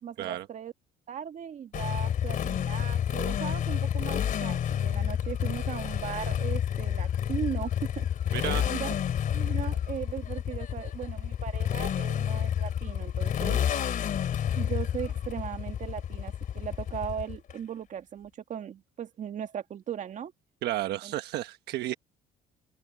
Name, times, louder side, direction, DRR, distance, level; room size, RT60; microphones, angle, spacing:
voice 1, 0.0-0.7 1.1-8.1 8.7-8.9 9.3-13.6 14.6-20.3 21.0-21.1, right 8 dB, 50° right, 1.9 m, -38 dB
Motorcycle, 1.7-17.5, left 9 dB, 55° left, 2.9 m, -30 dB
voice 2, 8.3-8.6 20.6-21.9, right 14 dB, 80° right, 1.2 m, -32 dB
cardioid pair, 110°, 17 cm